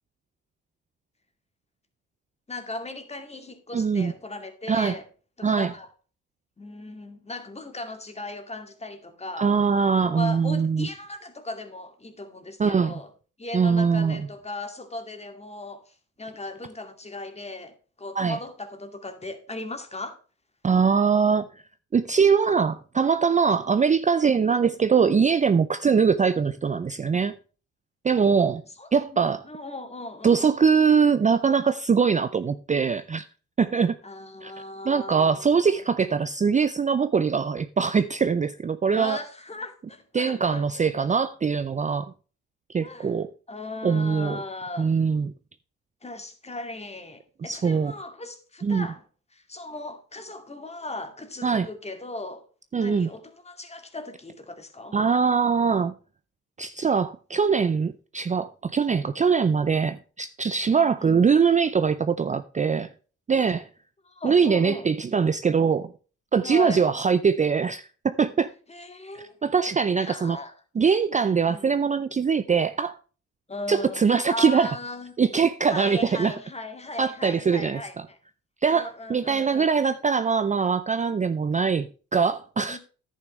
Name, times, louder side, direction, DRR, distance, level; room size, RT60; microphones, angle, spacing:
voice 1, 2.5-5.0 5.4-5.9 6.6-9.5 10.0-13.1 13.4-20.2 23.6-23.8 28.8-30.4 34.0-35.8 38.9-40.8 42.8-43.2 43.5-44.9 46.0-49.0 49.3-52.5 52.8-55.0 60.7-61.2 64.0-64.9 66.4-66.9 68.7-69.4 70.0-70.5 71.5-71.8 73.5-75.1 75.7-78.2 78.7-79.8 82.7-82.8, left 2 dB, 20° left, 2.3 m, -37 dB
voice 2, 3.7-4.1 4.7-4.9 5.4-5.7 9.4-10.9 12.6-12.9 13.5-14.2 18.2-18.4 20.6-21.6 21.9-27.4 28.0-28.6 28.9-29.4 30.2-33.2 33.6-34.0 34.4-34.5 34.8-39.2 40.1-42.1 42.7-43.3 43.8-44.4 44.8-45.3 47.4-47.9 48.6-48.9 51.4-51.7 52.7-53.1 54.9-55.9 56.6-62.9 63.3-63.7 64.2-65.9 66.3-68.5 69.4-70.4 70.8-73.0 73.7-74.8 75.2-76.3 77.0-78.0 78.6-82.8, right 6 dB, 25° right, 0.5 m, -22 dB
10.5 x 9.2 x 3.2 m
cardioid pair, 90°, 30 cm